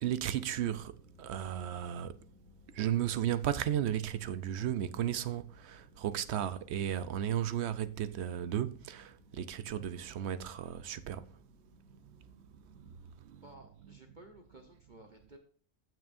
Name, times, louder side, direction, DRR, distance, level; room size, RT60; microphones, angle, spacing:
voice 1, 0.0-2.2 2.7-11.3 12.7-12.9 13.2-13.4, right 10 dB, 60° right, 0.8 m, -34 dB
sound 1, 0.8-13.1, left 2 dB, 35° left, 1.9 m, -62 dB
voice 2, 13.4-15.4, right 2 dB, 40° right, 1.0 m, -55 dB
16.0 x 6.1 x 2.5 m
omnidirectional pair, 1.5 m